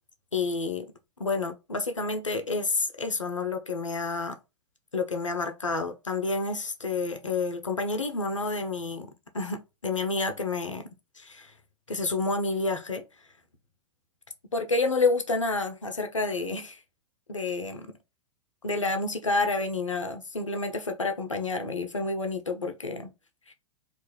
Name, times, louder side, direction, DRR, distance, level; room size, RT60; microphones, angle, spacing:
voice 1, 0.3-0.9 1.2-4.4 4.9-10.9 11.2-11.5 11.9-13.0 14.5-16.8 17.3-17.9 18.6-23.1 23.5-23.6, left 3 dB, 90° left, 0.5 m, -29 dB
2.4 x 2.2 x 3.0 m
figure-of-eight pair, 100°, 16 cm